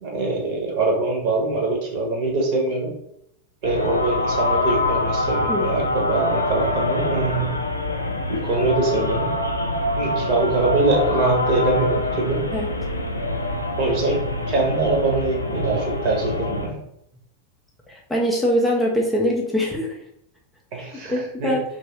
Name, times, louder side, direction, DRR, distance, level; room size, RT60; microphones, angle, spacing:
voice 1, 0.0-2.9 3.6-7.5 8.3-9.3 9.9-12.4 13.8-16.8 20.7-21.5, right 3 dB, 45° right, 0 dB, 1.0 m, -23 dB
sound 1, 3.6-16.7, left 2 dB, 85° left, 0.4 m, -25 dB
voice 2, 17.9-20.0 20.8-21.6, equal, 5° left, -2 dB, 0.5 m, -23 dB
3.0 x 2.6 x 2.9 m, 0.74 s
figure-of-eight pair, 90°, 0 cm